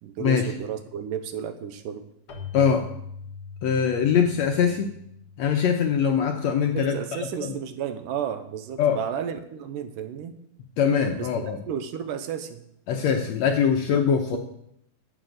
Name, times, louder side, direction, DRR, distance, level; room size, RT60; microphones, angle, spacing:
voice 1, 0.0-2.1 6.7-10.3 11.2-12.6, right 8 dB, 75° right, 9 dB, 2.4 m, -33 dB
Keyboard (musical), 2.3-6.8, left 5 dB, 55° left, 1.1 m, -42 dB
voice 2, 2.5-2.9 3.6-4.9 5.4-7.5 8.8-9.0 10.8-11.6 12.9-14.4, left 7 dB, 75° left, 4 dB, 1.7 m, -22 dB
10.5 x 8.2 x 7.8 m, 0.76 s
omnidirectional pair, 4.0 m